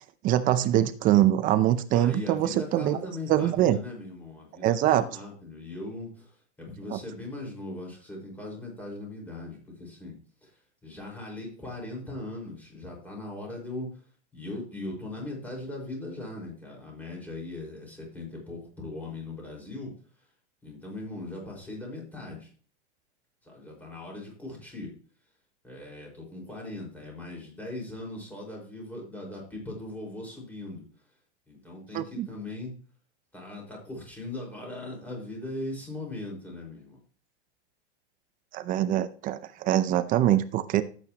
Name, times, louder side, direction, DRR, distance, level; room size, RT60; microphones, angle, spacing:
voice 1, 0.2-3.0 3.3-3.8 4.6-5.0 6.9-7.0 31.9-32.3 38.5-40.8, right 12 dB, 25° right, 12 dB, 0.6 m, -23 dB
voice 2, 1.9-14.0 14.3-19.9 20.6-22.5 23.4-24.9 25.6-30.8 31.5-32.7 33.3-37.0, left 2 dB, 5° left, -2 dB, 5.0 m, -39 dB
13.0 x 8.9 x 3.0 m, 0.41 s
supercardioid pair, 145°, 35 cm